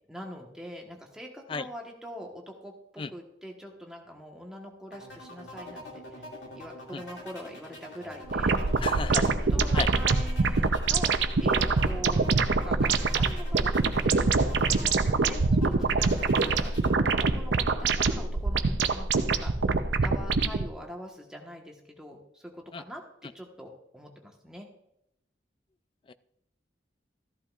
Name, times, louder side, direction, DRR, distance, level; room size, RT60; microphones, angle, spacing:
voice 1, 0.1-6.2 6.5-8.8 9.1-9.2 9.5-19.5 20.0-24.7, equal, 5° right, 0 dB, 1.3 m, -44 dB
sound 1, 4.9-16.9, left 1 dB, 85° left, 2.5 m, -45 dB
sound 2, 8.3-20.7, right 4 dB, 85° right, 0.7 m, -25 dB
voice 2, 8.8-9.2 9.7-9.9 22.7-22.8 26.1-26.2, left 4 dB, 30° left, 14 dB, 0.3 m, -32 dB
14.0 x 11.5 x 2.5 m, 0.81 s
head